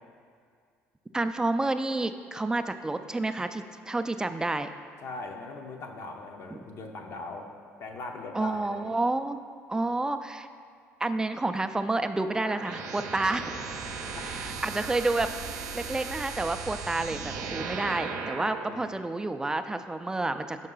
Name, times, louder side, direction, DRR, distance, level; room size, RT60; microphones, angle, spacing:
voice 1, 1.1-4.7 6.5-6.6 8.3-9.4 9.7-10.5 11.0-13.6 14.2-20.7, right 2 dB, 10° right, 9 dB, 0.3 m, -29 dB
voice 2, 5.0-7.5 7.8-9.0 14.0-14.5 18.7-18.9, left 3 dB, 55° left, 3 dB, 0.7 m, -40 dB
sound 1, 12.2-18.7, right 5 dB, 75° right, 0.6 m, -37 dB
5.5 x 5.3 x 3.8 m, 2.1 s
supercardioid pair, 80°, 6 cm